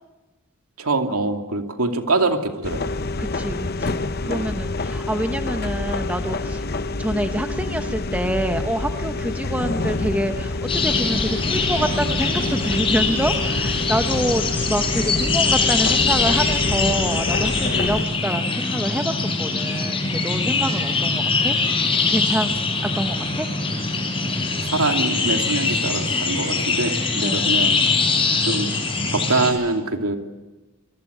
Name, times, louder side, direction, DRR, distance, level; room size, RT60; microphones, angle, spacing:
voice 1, 0.8-2.9 4.3-4.5 24.6-27.8 28.4-28.7 29.1-30.2, right 2 dB, 85° right, 5 dB, 2.7 m, -24 dB
sound 1, 2.6-18.0, left 2 dB, 45° left, 0.8 m, -27 dB
voice 2, 3.2-6.6 7.0-21.6 21.9-22.5 23.0-23.5 27.2-27.5, right 1 dB, 5° right, 6 dB, 1.0 m, -27 dB
sound 2, 10.7-29.5, left 4 dB, 25° left, 5.3 m, -22 dB
26.5 x 22.5 x 8.2 m, 1.1 s
head